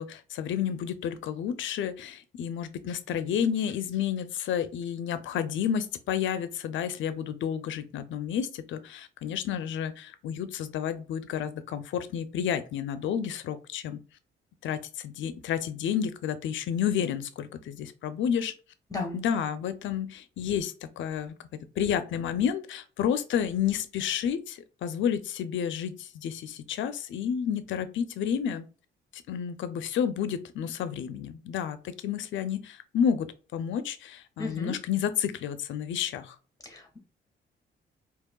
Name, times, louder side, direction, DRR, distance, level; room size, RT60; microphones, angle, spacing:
voice 1, 0.0-14.0 14.6-18.5 19.1-21.3 21.8-28.6 29.1-36.3, left 8 dB, 70° left, 12 dB, 0.5 m, -30 dB
voice 2, 34.4-34.7 36.6-37.0, left 3 dB, 20° left, 3 dB, 1.5 m, -34 dB
4.6 x 2.9 x 2.2 m, 0.36 s
cardioid pair, 90°, 20 cm